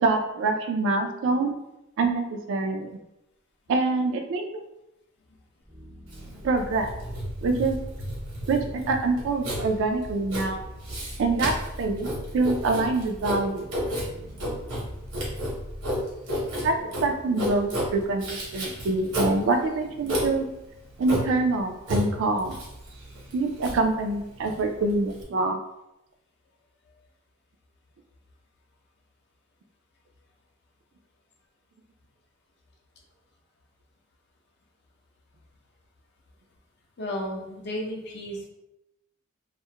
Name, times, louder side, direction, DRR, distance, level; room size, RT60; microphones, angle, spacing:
voice 1, 0.0-1.6 2.0-3.0 3.7-4.4 6.4-6.9 7.4-7.8 8.5-10.6 11.2-13.6 16.6-20.5 21.0-22.6 23.3-25.6, right 3 dB, 60° right, 5 dB, 0.3 m, -25 dB
sound 1, 5.6-15.9, equal, 5° right, 0.5 m, -42 dB
Writing, 6.1-25.2, equal, 80° right, 0.9 m, -32 dB
voice 2, 37.0-38.5, equal, 50° left, -1 dB, 0.5 m, -33 dB
2.3 x 2.0 x 2.7 m, 0.89 s
head